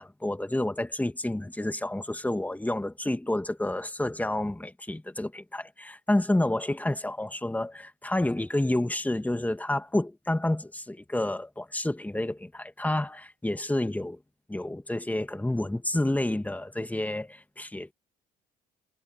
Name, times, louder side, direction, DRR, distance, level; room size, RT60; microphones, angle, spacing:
voice 1, 0.0-14.2 14.5-17.9, left 1 dB, 10° left, 1.9 m, -29 dB
supercardioid pair, 65°, 18 cm